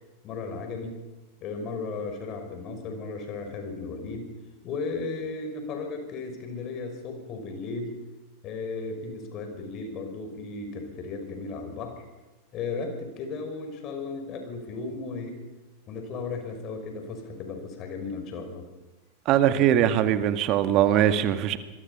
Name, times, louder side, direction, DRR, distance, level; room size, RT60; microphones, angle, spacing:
voice 1, 0.2-1.0 1.4-4.3 4.6-7.9 8.4-12.1 12.5-15.4 15.9-18.7, left 4 dB, 35° left, 5.4 m, -35 dB
voice 2, 19.3-21.6, right 11 dB, 40° right, 1.7 m, -21 dB
26.0 x 21.5 x 5.7 m
figure-of-eight pair, 90°, 0 cm